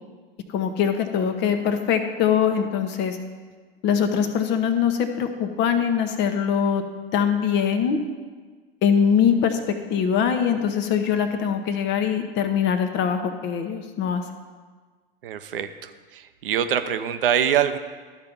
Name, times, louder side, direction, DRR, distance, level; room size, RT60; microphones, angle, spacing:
voice 1, 0.5-3.2 3.8-6.8 7.1-8.0 8.8-9.6 9.9-14.2, left 7 dB, 40° left, 7 dB, 1.0 m, -22 dB
voice 2, 15.2-17.8, right 9 dB, 65° right, 9 dB, 0.7 m, -24 dB
12.5 x 4.5 x 5.3 m, 1.5 s
figure-of-eight pair, 90°, 29 cm